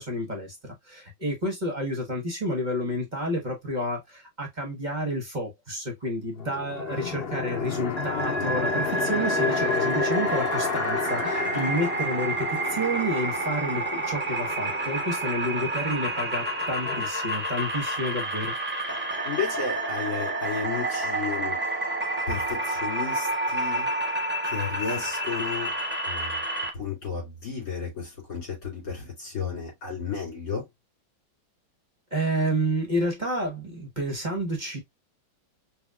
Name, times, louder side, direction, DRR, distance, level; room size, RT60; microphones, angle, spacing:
voice 1, 0.0-18.5 32.1-34.8, equal, 30° right, 1.0 m, -30 dB
sound 1, 6.4-17.1, left 5 dB, 85° left, 0.5 m, -32 dB
sound 2, 8.0-26.7, right 2 dB, 10° right, 0.5 m, -29 dB
voice 2, 19.2-21.6 22.3-23.9 24.4-25.7 26.1-26.4 26.7-30.7, left 5 dB, 45° left, 3.4 m, -33 dB
5.4 x 2.9 x 2.3 m
omnidirectional pair, 2.1 m